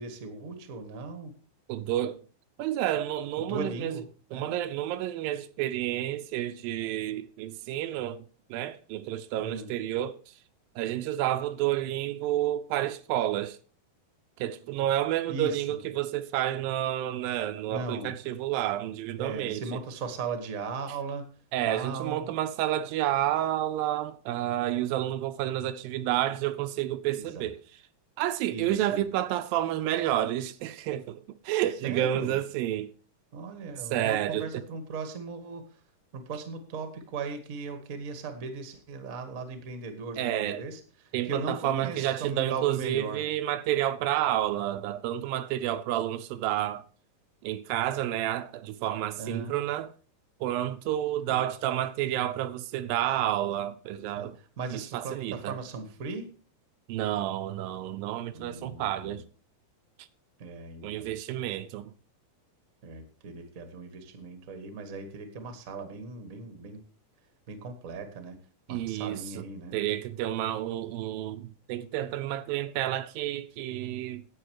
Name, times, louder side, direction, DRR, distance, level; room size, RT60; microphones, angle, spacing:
voice 1, 0.0-1.3 3.4-4.0 4.3-4.5 9.4-9.7 15.3-15.8 17.7-18.1 19.2-21.3 21.6-22.3 27.1-27.5 28.5-29.0 31.8-32.4 33.3-35.8 36.1-43.2 49.2-49.6 51.3-51.4 54.1-56.3 58.3-59.2 60.4-61.2 62.8-66.8 67.5-68.4 68.7-69.8, right 4 dB, 40° right, 1.2 m, -38 dB
voice 2, 1.7-2.2 2.6-4.0 4.3-8.2 8.5-10.2 10.8-13.6 14.4-19.6 21.5-27.6 28.2-32.9 33.9-34.5 40.2-40.6 41.1-46.8 47.4-49.9 50.4-54.4 54.7-55.6 56.9-59.2 60.8-61.9 68.7-69.4 69.7-74.3, right 12 dB, 80° right, 2.4 m, -30 dB
11.0 x 8.5 x 4.7 m
omnidirectional pair, 4.2 m